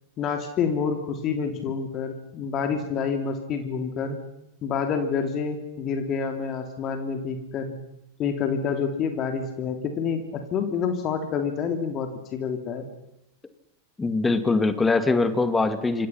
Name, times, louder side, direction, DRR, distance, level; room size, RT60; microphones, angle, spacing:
voice 1, 0.2-4.2 4.6-7.8 8.2-12.9, left 6 dB, 30° left, 6 dB, 3.1 m, -28 dB
voice 2, 14.0-16.1, left 3 dB, 10° left, 10 dB, 2.4 m, -22 dB
27.0 x 27.0 x 5.9 m, 0.85 s
figure-of-eight pair, 90°, 0 cm